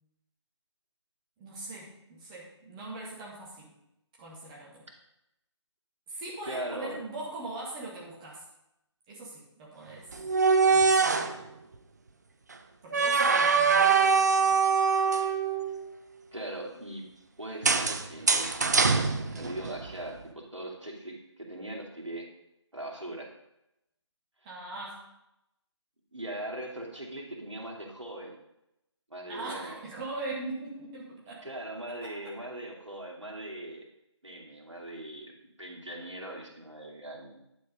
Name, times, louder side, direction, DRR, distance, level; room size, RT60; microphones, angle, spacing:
voice 1, 1.4-3.8 4.2-4.8 6.1-8.4 9.1-10.1 10.6-11.4 12.8-14.0 24.4-25.1 29.3-31.5 31.9-32.2, right 2 dB, 15° right, -5 dB, 1.5 m, -41 dB
voice 2, 6.4-7.0 16.3-17.0 17.4-22.3 22.7-23.3 26.1-28.4 29.1-29.8 31.4-33.8 34.2-35.3 35.6-37.4, right 1 dB, 75° right, 0 dB, 2.6 m, -40 dB
sound 1, 10.1-11.4 12.9-15.8 17.6-19.9, right 5 dB, 35° right, 0.6 m, -23 dB
10.5 x 4.8 x 5.2 m, 0.86 s
figure-of-eight pair, 155°, 16 cm